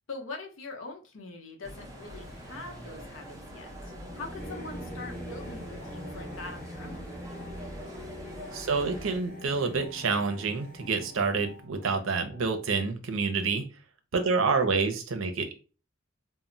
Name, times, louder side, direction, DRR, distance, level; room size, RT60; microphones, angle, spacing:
voice 1, 0.1-7.0, left 3 dB, 80° left, 2 dB, 0.7 m, -43 dB
sound 1, 1.6-9.2, equal, 15° right, 0.5 m, -44 dB
Singing / Musical instrument, 2.0-11.6, equal, 45° left, 0.8 m, -45 dB
sound 2, 4.0-12.8, left 2 dB, 40° right, 0.9 m, -49 dB
voice 2, 8.5-13.6 14.1-15.5, right 4 dB, 75° right, 7 dB, 0.5 m, -28 dB
2.1 x 2.0 x 3.7 m, 0.35 s
head